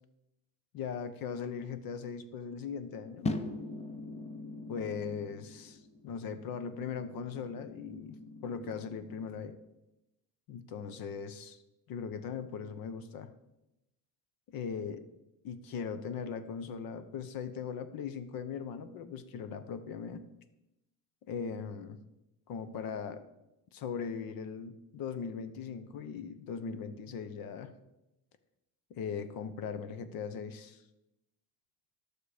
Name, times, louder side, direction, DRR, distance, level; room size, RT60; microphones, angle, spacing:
voice 1, 0.7-3.3 4.7-9.6 10.5-11.6 11.9-13.3 14.5-15.0 15.4-20.2 21.3-22.0 22.5-23.2 23.7-27.7 28.9-30.8, left 6 dB, 60° left, 12 dB, 1.0 m, -39 dB
sound 1, 3.2-9.5, left 2 dB, 15° left, 0.5 m, -42 dB
12.5 x 6.7 x 5.0 m, 0.93 s
cardioid pair, 150°, 39 cm